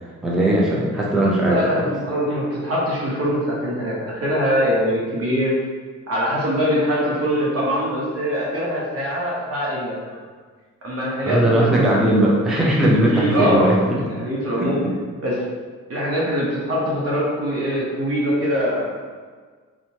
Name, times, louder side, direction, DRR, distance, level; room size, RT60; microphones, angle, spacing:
voice 1, 0.2-1.9 11.2-13.7 14.6-14.7, right 1 dB, ahead, -5 dB, 0.4 m, -18 dB
voice 2, 1.5-5.5 6.1-10.2 10.8-12.3 13.1-13.7 14.0-14.8 15.2-15.4 15.9-18.9, equal, 50° right, -5 dB, 0.8 m, -23 dB
2.8 x 2.1 x 2.7 m, 1.5 s
cardioid pair, 90°, 30 cm